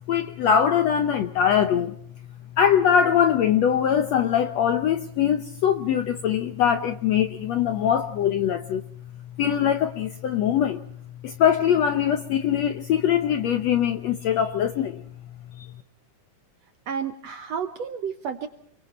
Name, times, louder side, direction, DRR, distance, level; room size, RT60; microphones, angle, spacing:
voice 1, 0.1-1.9 2.6-8.8 9.4-10.8 11.2-15.0 15.6-15.7, left 9 dB, 70° left, 1.7 m, -22 dB
voice 2, 16.9-18.5, right 7 dB, 65° right, 1.7 m, -31 dB
29.0 x 22.5 x 4.3 m
omnidirectional pair, 4.1 m